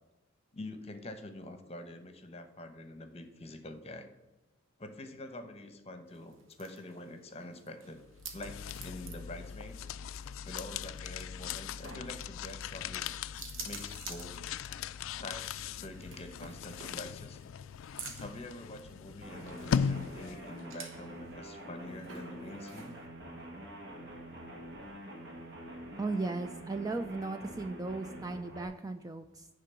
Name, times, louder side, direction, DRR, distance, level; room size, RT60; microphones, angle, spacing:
voice 1, 0.5-4.1 4.8-8.0 8.3-9.8 10.5-13.2 13.6-14.4 14.7-14.8 15.2-17.4 18.1-22.9, left 1 dB, 30° left, 8 dB, 0.9 m, -46 dB
sound 1, 6.1-23.1, right 5 dB, 70° right, 1.3 m, -51 dB
sound 2, 8.1-20.6, left 7 dB, 75° left, 0.3 m, -39 dB
sound 3, 19.2-28.7, right 1 dB, 55° right, 1.7 m, -46 dB
voice 2, 26.0-29.5, right 3 dB, 15° right, 7 dB, 0.3 m, -36 dB
9.6 x 3.8 x 6.8 m, 1.0 s
head